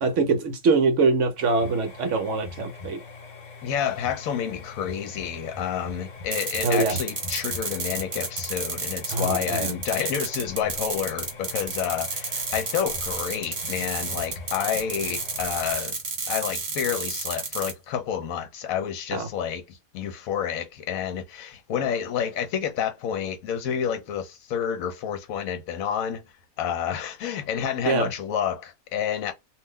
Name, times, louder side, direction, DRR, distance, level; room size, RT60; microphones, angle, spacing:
voice 1, 0.0-3.0 6.6-7.0 9.1-9.8 19.1-19.3 27.8-28.1, right 4 dB, 65° right, 0.8 m, -23 dB
sound 1, 1.4-15.7, left 4 dB, 45° left, 0.6 m, -42 dB
voice 2, 3.6-16.0 16.3-26.2 26.6-29.3, left 8 dB, 75° left, 1.0 m, -29 dB
sound 2, 6.3-17.7, right 3 dB, 50° right, 1.2 m, -31 dB
2.5 x 2.1 x 3.4 m
omnidirectional pair, 1.5 m